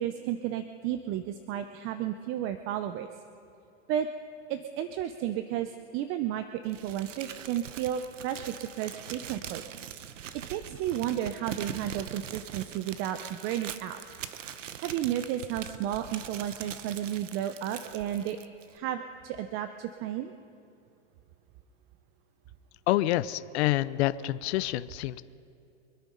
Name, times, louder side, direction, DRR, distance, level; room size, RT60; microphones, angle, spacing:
voice 1, 0.0-3.1 3.9-4.1 4.5-9.6 10.3-14.0 14.5-18.4 18.7-20.3, right 11 dB, 35° right, 9 dB, 0.7 m, -33 dB
Crumpling crinkling, 6.7-18.8, right 9 dB, 85° right, 0.9 m, -42 dB
voice 2, 22.9-25.2, left 15 dB, 60° left, 15 dB, 0.7 m, -27 dB
25.0 x 9.1 x 5.4 m, 2.7 s
hypercardioid pair, 120°, 36 cm